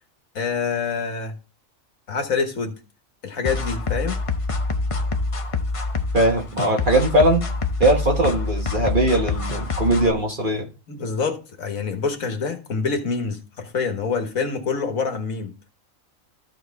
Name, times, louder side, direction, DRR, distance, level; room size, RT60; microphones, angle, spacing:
voice 1, 0.3-1.3 2.1-2.8 3.2-4.2 10.9-15.5, left 5 dB, 85° left, 1.8 m, -26 dB
sound 1, 3.4-10.1, left 3 dB, 30° left, 0.7 m, -26 dB
voice 2, 6.1-7.4 7.8-10.7, right 1 dB, 40° right, 1.3 m, -20 dB
14.0 x 4.8 x 3.4 m
omnidirectional pair, 1.4 m